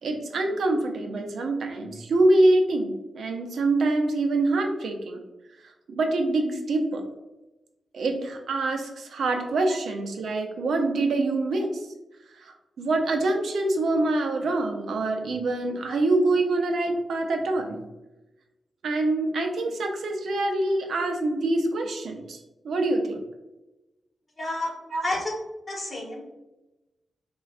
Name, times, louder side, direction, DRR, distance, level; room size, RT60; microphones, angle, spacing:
voice 1, 0.0-5.2 5.9-7.0 7.9-11.8 12.4-17.8 18.8-22.4 22.6-23.2 24.9-25.0, right 2 dB, 80° right, 4 dB, 0.5 m, -25 dB
voice 2, 24.4-24.7 25.0-25.3 25.7-26.2, left 2 dB, 30° left, -3 dB, 1.1 m, -30 dB
4.3 x 2.2 x 2.4 m, 1.0 s
cardioid pair, 80°, 0 cm